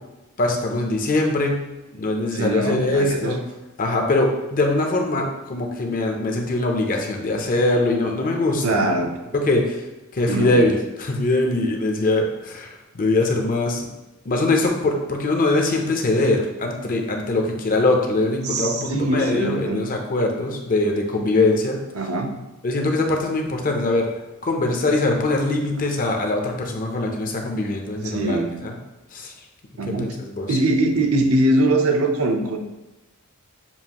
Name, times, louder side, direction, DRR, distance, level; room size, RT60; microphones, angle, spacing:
voice 1, 0.4-1.6 1.9-3.4 3.8-9.0 9.3-9.8 10.1-13.9 14.3-21.8 22.6-24.1 24.4-28.4 28.6-28.7 29.1-29.3 29.9-30.6, left 2 dB, 40° left, 2 dB, 0.6 m, -22 dB
voice 2, 2.3-3.4 8.6-9.2 10.3-10.6 18.4-19.8 21.9-22.3 28.0-28.6 29.8-30.2 30.5-32.6, right 2 dB, 70° right, 3 dB, 0.6 m, -22 dB
7.1 x 2.5 x 2.9 m, 1.0 s
head